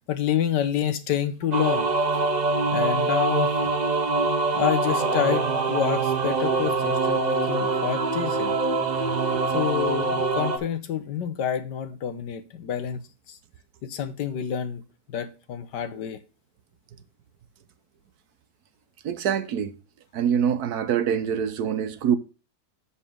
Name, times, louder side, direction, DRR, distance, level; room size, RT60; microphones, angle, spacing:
voice 1, 0.1-1.9 2.7-3.5 4.5-8.6 9.5-13.0 13.3-13.4 13.8-14.8 15.1-16.2, left 9 dB, 90° left, 1.6 m, -28 dB
sound 1, 1.5-10.6, right 3 dB, 35° right, 0.8 m, -24 dB
voice 2, 19.0-19.7 20.1-22.2, right 8 dB, 70° right, 1.3 m, -24 dB
7.1 x 7.0 x 3.5 m
omnidirectional pair, 1.8 m